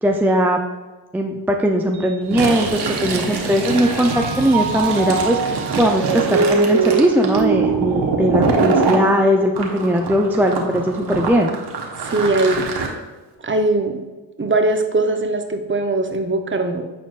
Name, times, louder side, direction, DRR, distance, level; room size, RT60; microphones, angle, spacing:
voice 1, 0.0-0.6 1.1-5.4 5.8-11.5, equal, 5° right, 2 dB, 0.5 m, -19 dB
Mallet percussion, 1.9-3.3 3.7-9.1, right 5 dB, 75° right, 0.9 m, -24 dB
Fill (with liquid), 2.2-9.0 9.5-12.9, right 4 dB, 55° right, 1.4 m, -24 dB
voice 2, 12.0-12.7 13.4-14.0 14.4-16.8, right 2 dB, 25° right, 5 dB, 0.9 m, -20 dB
9.0 x 4.3 x 2.5 m, 1.2 s
supercardioid pair, 55°, 48 cm